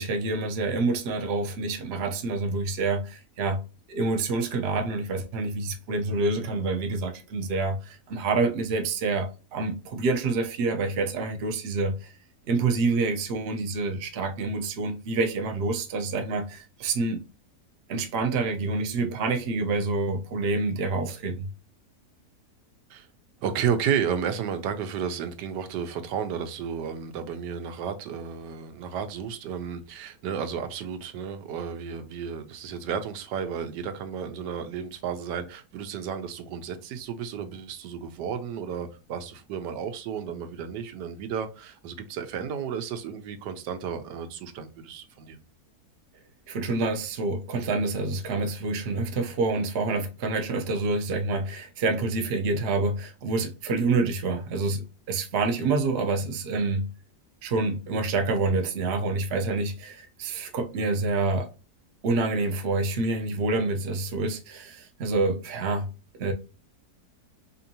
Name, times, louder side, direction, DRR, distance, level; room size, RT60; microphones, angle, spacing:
voice 1, 0.0-3.6 3.9-11.9 12.5-17.2 17.9-21.5 46.5-56.9 57.4-61.5 62.0-65.9 66.2-66.3, right 3 dB, 55° right, 0.7 m, -27 dB
voice 2, 23.4-45.4, right 7 dB, 90° right, 1.2 m, -32 dB
4.3 x 2.7 x 2.8 m
omnidirectional pair, 1.8 m